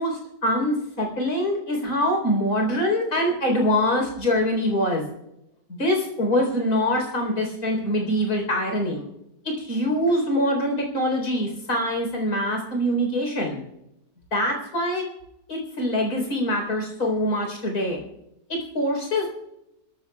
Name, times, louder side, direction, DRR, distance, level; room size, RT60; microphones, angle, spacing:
voice 1, 0.0-5.0 5.7-9.0 9.4-13.6 14.3-15.0 15.5-18.0 18.5-19.3, equal, 65° left, 1 dB, 4.6 m, -24 dB
25.0 x 14.0 x 2.4 m, 0.85 s
omnidirectional pair, 1.7 m